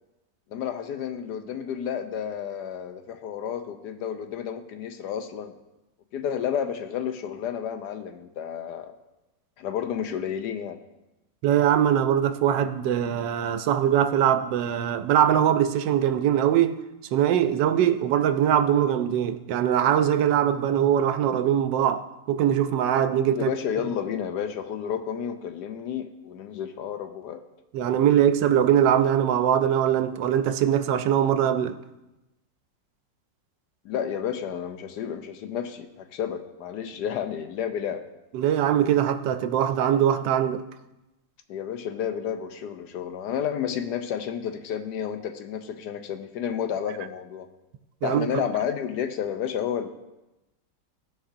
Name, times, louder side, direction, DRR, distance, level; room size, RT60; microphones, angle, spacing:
voice 1, 0.5-5.5 6.1-8.9 9.6-10.8 23.3-27.4 27.9-28.0 33.8-38.0 41.5-47.5 48.0-49.9, left 8 dB, 75° left, 1.1 m, -31 dB
voice 2, 11.4-16.8 17.1-23.5 27.7-31.8 38.3-40.6 48.0-48.4, right 10 dB, 85° right, 1.2 m, -22 dB
15.5 x 5.5 x 2.6 m
omnidirectional pair, 1.9 m